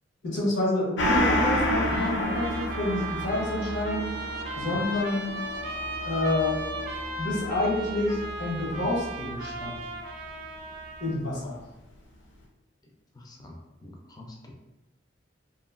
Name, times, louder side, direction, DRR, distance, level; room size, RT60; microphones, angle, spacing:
voice 1, 0.2-4.0 4.6-5.4 6.0-6.6 7.2-9.8 11.0-11.6, left 1 dB, 90° left, -6 dB, 0.9 m, -28 dB
Gong, 1.0-9.9 10.3-10.4, left 1 dB, 70° left, 0.5 m, -31 dB
Trumpet, 1.5-11.2, right 1 dB, 55° right, 0.4 m, -37 dB
voice 2, 13.2-13.6 13.8-14.5, left 1 dB, 20° left, 0 dB, 0.4 m, -46 dB
2.8 x 2.4 x 2.4 m, 0.98 s
head